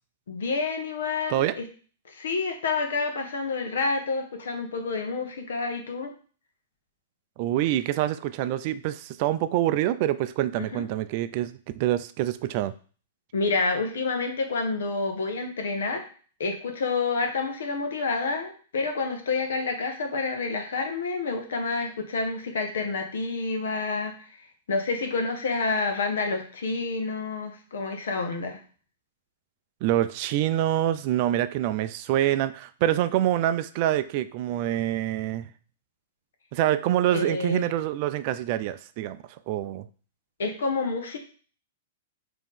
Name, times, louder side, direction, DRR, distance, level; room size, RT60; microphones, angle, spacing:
voice 1, 0.3-1.7 2.1-6.1 10.6-10.9 13.3-16.0 16.4-24.1 24.7-28.6 37.1-37.6 40.4-41.2, left 4 dB, 70° left, 5 dB, 0.9 m, -28 dB
voice 2, 7.4-12.7 29.8-35.5 36.5-39.2 39.5-39.9, right 13 dB, 50° right, 13 dB, 0.3 m, -26 dB
3.7 x 2.9 x 3.6 m, 0.40 s
hypercardioid pair, 110°, 0 cm